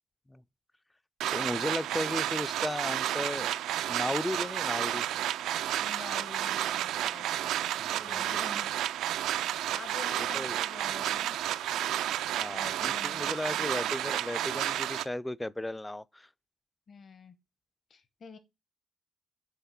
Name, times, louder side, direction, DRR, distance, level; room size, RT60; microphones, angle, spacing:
sound 1, 1.2-15.0, right 12 dB, 85° right, 0.3 m, -31 dB
voice 1, 1.3-3.5 3.9-5.1 7.8-8.6 10.2-10.6 12.4-16.3, left 1 dB, 10° left, 0.3 m, -35 dB
voice 2, 5.8-7.7 8.0-8.7 9.7-11.4 12.5-13.7 16.9-17.3 17.9-18.4, left 5 dB, 50° left, 0.9 m, -47 dB
5.7 x 3.6 x 5.7 m
cardioid pair, 90°, 0 cm